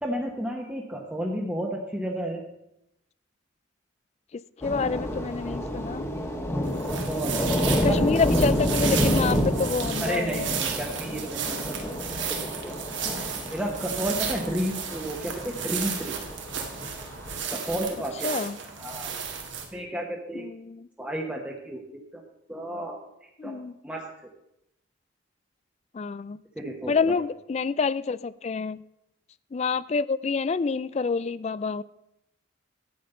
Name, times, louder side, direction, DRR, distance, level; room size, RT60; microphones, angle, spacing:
voice 1, 0.0-2.4 6.9-8.1 10.0-11.7 12.6-12.7 13.5-16.1 17.5-18.3 18.8-19.1 19.7-20.4 21.0-22.0 22.5-23.0 23.4-23.6 23.8-24.0 26.6-27.2, right 1 dB, 5° right, -2 dB, 1.1 m, -31 dB
voice 2, 4.3-6.1 7.2-7.5 7.8-10.6 14.5-14.6 18.2-18.6 20.3-20.9 23.4-23.8 25.9-26.4 26.9-28.8 29.5-31.8, left 4 dB, 35° left, 18 dB, 0.3 m, -28 dB
Thunder / Rain, 4.6-17.4, equal, 15° left, 1.3 m, -29 dB
sound 1, 6.6-19.6, right 7 dB, 70° right, 1.9 m, -34 dB
12.0 x 8.5 x 5.5 m, 0.83 s
head